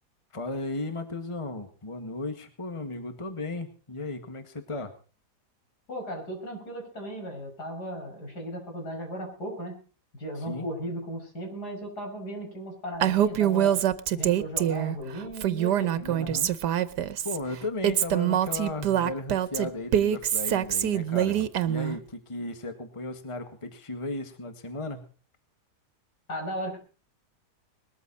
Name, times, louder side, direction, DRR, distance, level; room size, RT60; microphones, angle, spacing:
voice 1, 0.3-4.9 10.4-10.7 16.0-16.5 17.2-25.1, left 2 dB, 20° left, 8 dB, 1.7 m, -35 dB
voice 2, 5.9-9.8 10.1-13.8 14.1-16.4 26.3-26.8, equal, 75° left, 2 dB, 6.6 m, -36 dB
Female speech woman speaking, 13.0-15.0 15.4-17.4 17.8-22.0, right 11 dB, 85° right, 1.5 m, -25 dB
20.5 x 13.5 x 4.1 m, 0.37 s
omnidirectional pair, 1.7 m